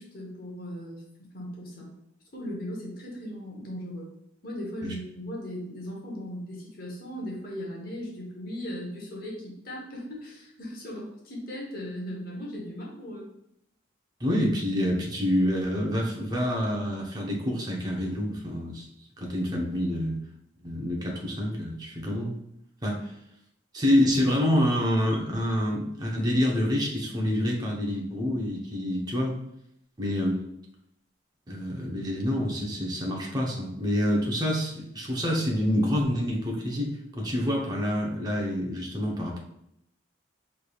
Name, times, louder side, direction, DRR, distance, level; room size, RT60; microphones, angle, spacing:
voice 1, 0.0-1.9 2.3-4.1 4.4-13.3, equal, 50° left, -3 dB, 1.0 m, -38 dB
voice 2, 14.2-18.9 19.2-20.2 20.6-22.3 22.8-23.1 23.7-29.4 30.0-30.4 31.5-39.4, equal, 20° right, -1 dB, 0.7 m, -27 dB
4.5 x 3.3 x 2.3 m, 0.76 s
head